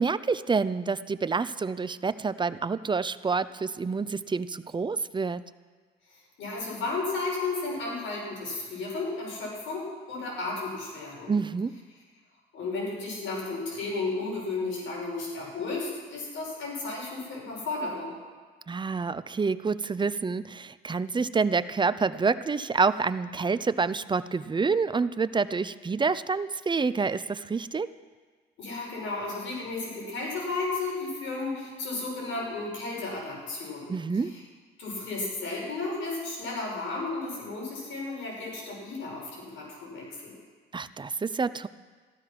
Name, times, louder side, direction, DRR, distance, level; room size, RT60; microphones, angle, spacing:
voice 1, 0.0-5.4 11.3-11.7 18.7-27.9 33.9-34.3 40.7-41.7, right 4 dB, 25° right, 14 dB, 0.6 m, -28 dB
voice 2, 6.4-11.3 12.5-18.1 28.6-33.9 34.8-40.3, left 3 dB, 75° left, -2 dB, 6.0 m, -33 dB
15.0 x 12.5 x 6.0 m, 1.5 s
cardioid pair, 90°, 20 cm